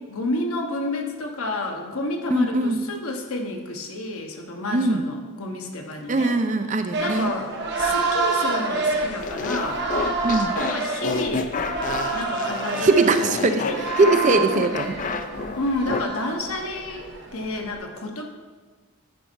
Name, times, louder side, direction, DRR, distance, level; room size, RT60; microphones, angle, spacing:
voice 1, 0.0-6.4 7.0-9.8 10.5-11.5 12.1-13.0 13.5-13.9 15.6-18.3, left 2 dB, 75° left, 3 dB, 1.1 m, -30 dB
voice 2, 2.3-2.8 4.7-5.1 6.1-7.3 10.2-10.6 12.8-13.6 14.0-15.0, right 3 dB, 35° right, 8 dB, 0.5 m, -21 dB
sound 1, 6.9-17.7, right 3 dB, 50° right, 1.0 m, -28 dB
sound 2, 9.2-16.0, left 4 dB, 35° left, 0.4 m, -30 dB
10.0 x 5.3 x 4.6 m, 1.4 s
head